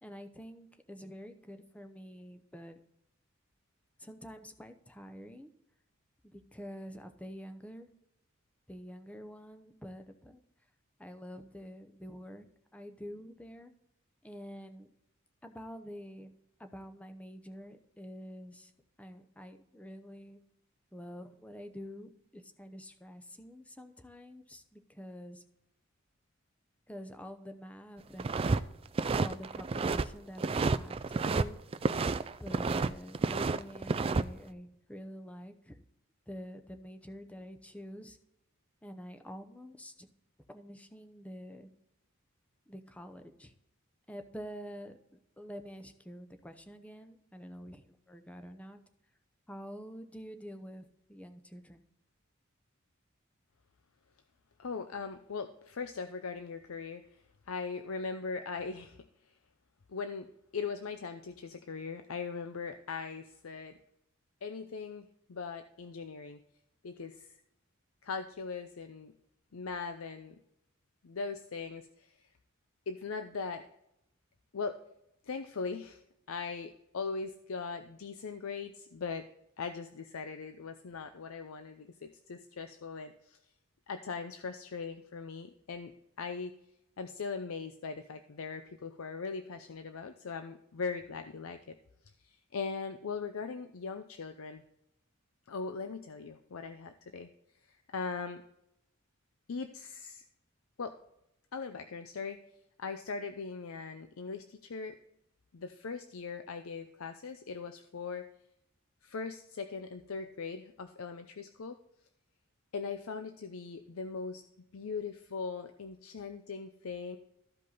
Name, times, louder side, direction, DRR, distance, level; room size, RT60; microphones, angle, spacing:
voice 1, 0.0-2.8 4.0-5.5 6.3-7.9 8.7-10.4 11.0-12.5 12.7-13.7 14.2-14.9 15.4-16.3 16.6-18.7 19.0-20.4 20.9-25.4 26.9-28.3 29.2-31.6 32.4-35.8 36.3-38.2 38.8-40.1 40.5-41.7 42.7-43.5 44.1-48.8 49.5-51.8, equal, 5° left, 7 dB, 0.7 m, -47 dB
sound 1, 28.2-28.6 28.9-30.1 30.4-31.4 31.7-32.9 33.1-34.2, right 4 dB, 25° right, 0.3 m, -30 dB
voice 2, 54.6-59.0 59.9-63.7 64.4-66.4 66.8-67.3 68.0-69.1 69.5-70.4 71.0-72.3 72.9-73.7 74.5-74.8 75.2-76.0 76.3-79.2 79.6-83.4 83.9-85.9 86.2-86.5 87.0-91.8 92.2-94.6 95.5-97.3 97.7-98.4 99.5-100.2 100.8-101.0 101.5-102.4 102.8-105.0 105.5-108.2 109.0-111.8 112.7-114.4 114.7-117.2, left 5 dB, 80° left, 8 dB, 0.6 m, -40 dB
14.0 x 5.3 x 4.0 m, 0.81 s
head